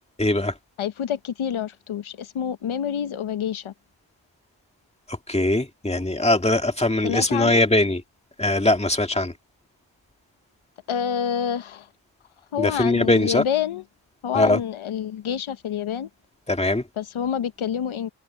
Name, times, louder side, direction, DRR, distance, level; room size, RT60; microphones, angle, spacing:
voice 1, 0.2-0.5 5.1-8.0 8.4-9.3 12.6-13.4 14.3-14.6 16.5-16.8, left 1 dB, 15° left, 2.2 m, -21 dB
voice 2, 0.8-3.7 7.0-7.6 10.9-11.9 12.5-13.8 14.2-16.1 17.0-18.1, left 8 dB, 80° left, 0.9 m, -27 dB
wide cardioid pair, 90°, 48 cm